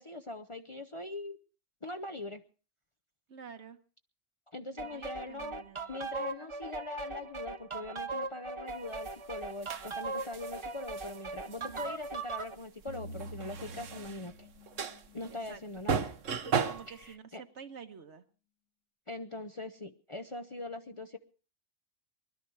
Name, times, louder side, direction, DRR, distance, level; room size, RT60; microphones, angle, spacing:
voice 1, 0.0-1.4 1.8-2.4 4.5-5.6 5.9-14.5 15.1-16.0 16.9-17.4 19.1-21.2, left 2 dB, 30° left, 6 dB, 0.7 m, -42 dB
voice 2, 3.3-3.8 4.7-6.0 11.6-12.0 15.3-15.6 16.7-18.2, right 6 dB, 65° right, 8 dB, 1.5 m, -49 dB
sound 1, 4.8-12.6, right 3 dB, 30° right, 0.7 m, -39 dB
sound 2, 8.9-17.1, right 6 dB, 80° right, 1.4 m, -37 dB
sound 3, 12.9-16.1, equal, 60° left, 2.7 m, -48 dB
21.0 x 12.0 x 4.7 m, 0.38 s
omnidirectional pair, 1.3 m